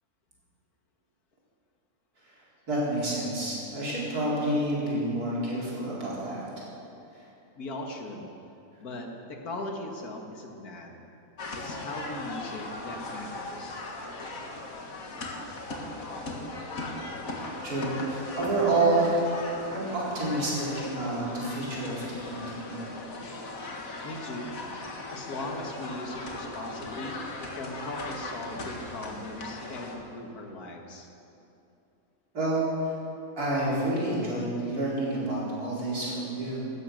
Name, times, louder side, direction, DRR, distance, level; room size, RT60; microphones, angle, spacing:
voice 1, 2.7-6.4 17.4-19.1 19.7-22.9 32.3-32.6 32.8-32.9 33.4-36.7, right 2 dB, 90° right, -6 dB, 4.8 m, -29 dB
voice 2, 7.6-8.3 8.8-11.0 11.6-13.9 24.0-24.5 25.0-31.1, left 2 dB, 80° left, 2 dB, 2.2 m, -39 dB
sound 1, 11.4-30.0, left 2 dB, 65° left, 2.1 m, -38 dB
16.5 x 13.5 x 6.5 m, 2.7 s
omnidirectional pair, 1.6 m